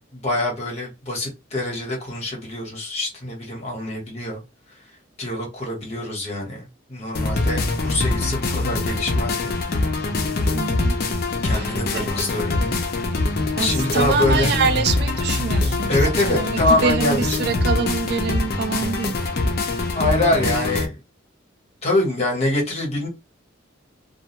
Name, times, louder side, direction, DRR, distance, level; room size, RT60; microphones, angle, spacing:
voice 1, 0.1-4.4 5.2-9.5 11.4-12.8 13.6-14.5 15.9-17.4 19.9-21.0 21.8-23.1, left 1 dB, 35° left, 1.0 m, -25 dB
sound 1, 7.1-20.9, left 2 dB, 50° left, 0.5 m, -23 dB
voice 2, 10.5-11.0 11.5-12.1 13.6-19.2, right 5 dB, 55° right, 0.3 m, -25 dB
2.3 x 2.1 x 2.8 m
head